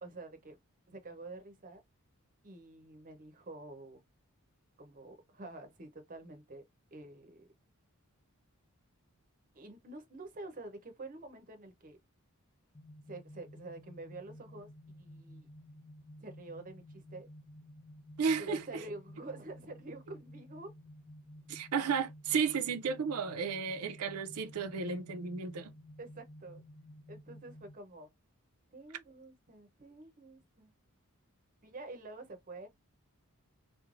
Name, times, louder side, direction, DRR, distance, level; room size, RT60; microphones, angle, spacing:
voice 1, 0.0-0.6 0.9-1.8 2.4-4.0 4.8-6.6 6.9-7.5 9.5-12.0 13.1-15.5 16.2-17.3 18.4-20.7 26.0-26.6 27.1-28.1 28.7-30.7 31.6-32.7, right 2 dB, 40° right, 0.7 m, -48 dB
sound 1, 12.7-27.8, equal, 15° left, 0.4 m, -53 dB
voice 2, 18.2-18.6 21.5-25.7, right 6 dB, 85° right, 0.5 m, -33 dB
3.1 x 2.1 x 2.4 m
head